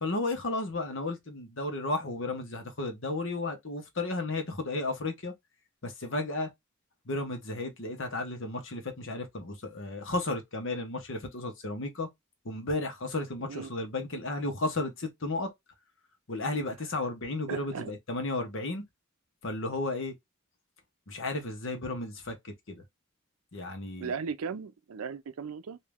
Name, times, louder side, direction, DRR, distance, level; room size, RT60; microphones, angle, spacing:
voice 1, 0.0-5.3 5.8-6.5 7.1-12.1 12.4-15.5 16.3-18.8 19.4-20.1 21.1-22.8 23.5-24.1, left 2 dB, 60° left, 1.0 m, -33 dB
voice 2, 17.5-17.9 24.0-25.8, right 6 dB, 85° right, 0.5 m, -37 dB
3.1 x 2.7 x 3.5 m
head